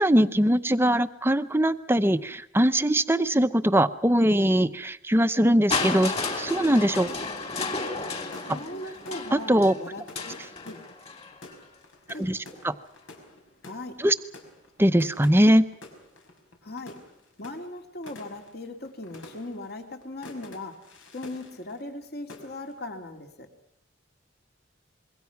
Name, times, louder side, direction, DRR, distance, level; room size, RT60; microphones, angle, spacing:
voice 1, 0.0-7.1 9.3-9.7 12.2-12.4 12.6-12.7 14.0-14.1 14.8-15.7, right 1 dB, 10° right, 11 dB, 0.8 m, -21 dB
sound 1, 5.6-22.0 22.3-22.8, left 2 dB, 85° left, 5.5 m, -49 dB
Crushing, 5.7-11.6 12.6-12.7, left 3 dB, 30° left, 3.1 m, -32 dB
voice 2, 8.5-10.8 12.1-12.3 13.6-14.0 16.6-17.0 17.4-20.8 21.1-23.5, left 2 dB, 55° left, 4 dB, 2.8 m, -39 dB
26.0 x 22.5 x 6.0 m, 0.81 s
head